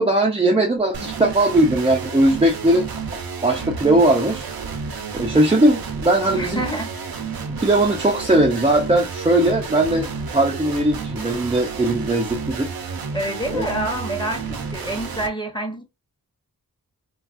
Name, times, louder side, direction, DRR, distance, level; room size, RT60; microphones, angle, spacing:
voice 1, 0.0-2.8 3.4-4.5 5.1-6.6 7.5-12.7 13.5-13.6, right 1 dB, 15° right, 0.4 m, -19 dB
sound 1, 0.9-15.3, right 5 dB, 65° right, 0.6 m, -31 dB
voice 2, 6.3-6.9 13.1-15.8, right 1 dB, 10° left, 0.8 m, -27 dB
3.3 x 2.3 x 2.4 m
wide cardioid pair, 75°, 38 cm